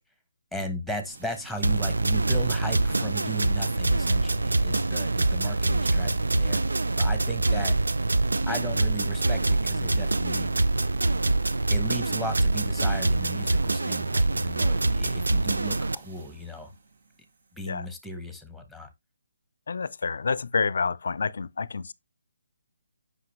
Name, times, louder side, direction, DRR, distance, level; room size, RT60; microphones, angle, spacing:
voice 1, 0.5-7.8 8.5-10.5 11.7-16.7 17.5-18.9, equal, ahead, 1.2 m, -36 dB
sound 1, 1.0-17.7, right 4 dB, 60° right, 1.4 m, -50 dB
sound 2, 1.6-15.9, right 2 dB, 80° right, 0.5 m, -25 dB
voice 2, 19.7-21.9, left 5 dB, 65° left, 0.5 m, -28 dB
8.1 x 5.6 x 3.1 m
figure-of-eight pair, 145°, 0 cm